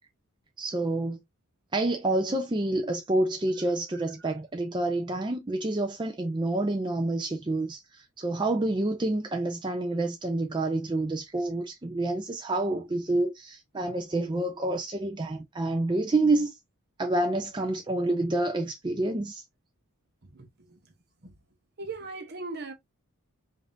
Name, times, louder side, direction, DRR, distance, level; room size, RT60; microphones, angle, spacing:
voice 1, 0.6-1.2 1.7-16.6 17.0-19.4, right 2 dB, 20° right, 0.4 m, -28 dB
voice 2, 3.9-4.3 20.2-20.9 21.2-21.4 21.8-22.7, right 3 dB, 50° right, 0.9 m, -40 dB
5.2 x 2.6 x 2.6 m
head